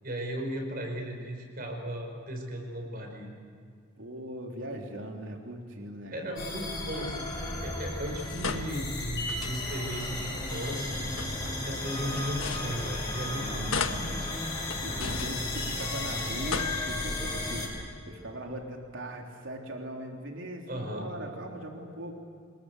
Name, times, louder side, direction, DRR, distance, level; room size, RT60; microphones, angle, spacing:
voice 1, 0.0-3.3 6.1-7.3 7.6-11.0 11.6-14.3 20.7-21.1, equal, 45° right, 2 dB, 5.2 m, -36 dB
voice 2, 4.0-6.2 8.4-8.8 13.3-14.3 14.8-17.7 18.1-22.1, right 1 dB, 70° right, 1 dB, 3.5 m, -40 dB
sound 1, 6.4-17.7, left 2 dB, 20° left, 7.3 m, -34 dB
sound 2, 8.1-10.0 10.9-13.3 13.7-16.0 16.3-17.3, left 5 dB, 85° left, 1.5 m, -38 dB
27.0 x 21.0 x 8.1 m, 2.3 s
head